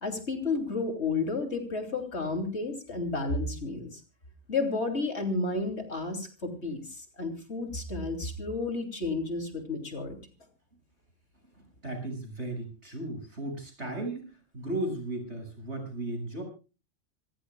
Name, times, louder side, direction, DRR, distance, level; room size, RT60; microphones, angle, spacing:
voice 1, 0.0-4.0 4.5-10.1, left 3 dB, 60° left, 5 dB, 3.3 m, -32 dB
voice 2, 11.5-16.4, right 1 dB, 60° right, 4 dB, 7.5 m, -36 dB
27.5 x 15.0 x 2.4 m, 0.33 s
omnidirectional pair, 1.3 m